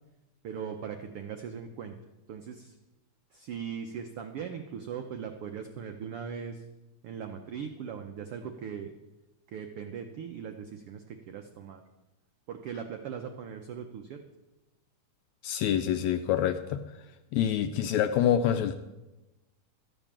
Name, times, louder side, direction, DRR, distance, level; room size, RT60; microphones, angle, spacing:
voice 1, 0.4-1.9 2.3-2.7 3.3-6.6 7.0-8.9 9.5-11.8 12.5-14.2, right 7 dB, 85° right, 5 dB, 1.2 m, -39 dB
voice 2, 15.4-16.8 17.3-18.7, left 10 dB, 80° left, 8 dB, 1.6 m, -26 dB
13.0 x 8.8 x 7.3 m, 1.0 s
omnidirectional pair, 3.7 m